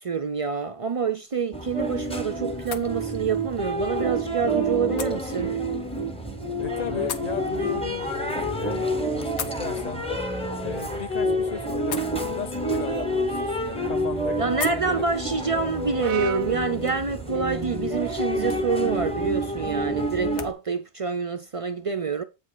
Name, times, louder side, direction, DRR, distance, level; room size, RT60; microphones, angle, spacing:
voice 1, 0.0-5.6 14.4-22.2, right 5 dB, 45° right, 0.4 m, -27 dB
sound 1, 1.0-20.5, left 7 dB, 90° left, 1.1 m, -44 dB
sound 2, 1.5-20.5, right 1 dB, 5° left, 0.9 m, -28 dB
voice 2, 6.6-8.8 9.1-10.0 10.6-15.1, left 6 dB, 40° left, 0.8 m, -36 dB
Brass instrument, 16.0-20.2, right 9 dB, 85° right, 0.9 m, -39 dB
8.2 x 5.0 x 3.9 m
omnidirectional pair, 1.1 m